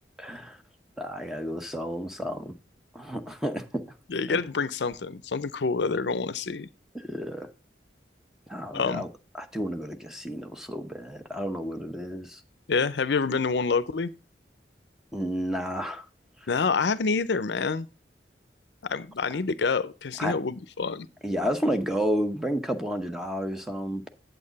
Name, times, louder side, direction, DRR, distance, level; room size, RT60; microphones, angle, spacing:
voice 1, 0.2-0.6 1.0-2.5 2.9-3.8 4.3-4.4 6.9-7.5 8.5-9.1 9.4-12.4 15.1-16.1 20.2-20.3 21.2-24.1, equal, 5° right, 0.8 m, -31 dB
voice 2, 4.1-6.7 8.7-9.0 12.7-14.1 16.5-17.9 18.8-21.1, left 4 dB, 70° left, 0.6 m, -27 dB
8.7 x 8.0 x 4.0 m
head